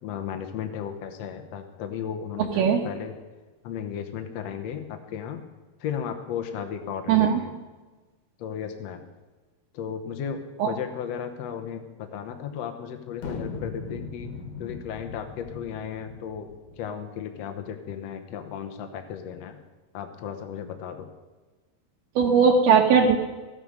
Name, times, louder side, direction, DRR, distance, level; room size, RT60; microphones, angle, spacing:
voice 1, 0.0-3.1 3.6-5.4 5.8-7.5 8.4-9.0 9.7-14.3 14.6-16.5 16.8-19.6 19.9-21.1, left 8 dB, 85° left, 6 dB, 1.4 m, -35 dB
voice 2, 2.4-2.8 7.1-7.4 10.6-10.7 22.2-23.2, right 6 dB, 75° right, -1 dB, 2.9 m, -19 dB
sound 1, 13.2-16.8, left 4 dB, 55° left, 2.0 m, -38 dB
15.5 x 9.2 x 6.5 m, 1.3 s
omnidirectional pair, 4.6 m